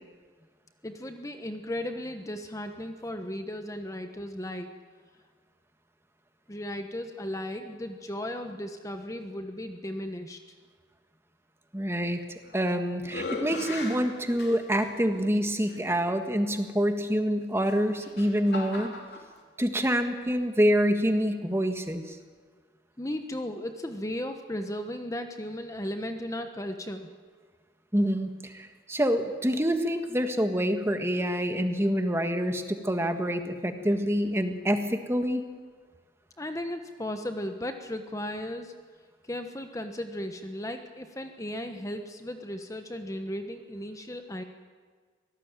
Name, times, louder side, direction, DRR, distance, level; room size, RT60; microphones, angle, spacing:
voice 1, 0.8-4.7 6.5-10.4 23.0-27.1 36.4-38.7 39.2-44.4, left 1 dB, 20° left, 6 dB, 1.2 m, -36 dB
voice 2, 11.7-12.2 12.5-18.9 19.6-22.2 27.9-35.4, equal, 15° right, 6 dB, 1.6 m, -26 dB
sound 1, 12.2-12.7 13.0-14.9 15.7-15.8 17.6-19.3, left 2 dB, 65° left, 4.0 m, -38 dB
25.5 x 18.5 x 9.1 m, 1.5 s
head